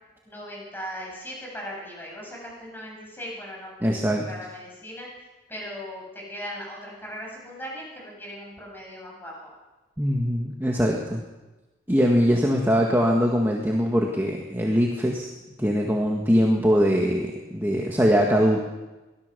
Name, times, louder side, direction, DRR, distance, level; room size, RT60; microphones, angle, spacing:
voice 1, 0.3-5.1 5.5-9.5, equal, 10° left, -2 dB, 7.8 m, -38 dB
voice 2, 3.8-4.3 10.0-11.2 11.9-15.3 15.6-18.6, equal, 10° right, -1 dB, 1.8 m, -22 dB
23.5 x 16.5 x 6.9 m, 1.1 s
head